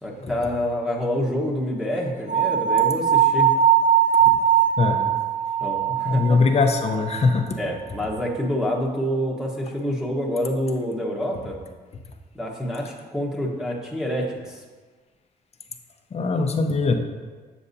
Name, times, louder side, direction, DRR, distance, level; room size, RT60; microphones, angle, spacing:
voice 1, 0.0-3.5 5.6-6.4 7.6-11.6 12.3-14.6, equal, 5° right, -1 dB, 1.2 m, -27 dB
sound 1, 2.3-7.4, right 9 dB, 50° right, 0.8 m, -20 dB
voice 2, 6.1-7.6 16.1-17.0, left 4 dB, 40° left, 4 dB, 0.8 m, -21 dB
7.1 x 6.7 x 2.7 m, 1.4 s
cardioid pair, 80°, 17 cm